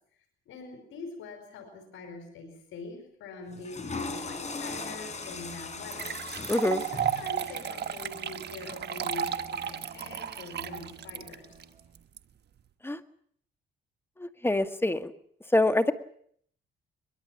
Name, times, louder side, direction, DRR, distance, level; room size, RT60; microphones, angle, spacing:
voice 1, 0.4-11.5, left 3 dB, 85° left, 5 dB, 5.0 m, -44 dB
Water / Toilet flush, 3.5-9.7, left 3 dB, 35° left, 4.7 m, -40 dB
Bowed string instrument, 3.5-12.1, right 3 dB, 30° right, 4.3 m, -53 dB
sound 1, 5.2-5.3 5.9-12.2, right 9 dB, 60° right, 1.3 m, -34 dB
voice 2, 6.5-6.8 12.8-13.0 14.2-15.1 15.5-15.9, left 2 dB, 10° left, 9 dB, 1.7 m, -25 dB
22.5 x 22.0 x 7.2 m, 0.64 s
cardioid pair, 90°, 20 cm